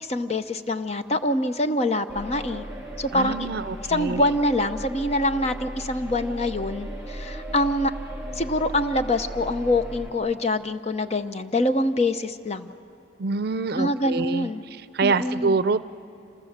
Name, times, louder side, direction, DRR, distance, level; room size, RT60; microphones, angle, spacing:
voice 1, 0.0-2.6 3.0-3.5 3.9-7.9 8.4-12.7 13.8-14.6 15.0-15.6, left 1 dB, 35° left, 9 dB, 0.8 m, -25 dB
sound 1, 2.1-10.1, right 1 dB, 5° right, 2.6 m, -36 dB
voice 2, 3.1-4.2 13.2-14.5 14.9-15.9, right 4 dB, 55° right, 14 dB, 0.5 m, -25 dB
28.0 x 27.0 x 7.4 m, 2.6 s
head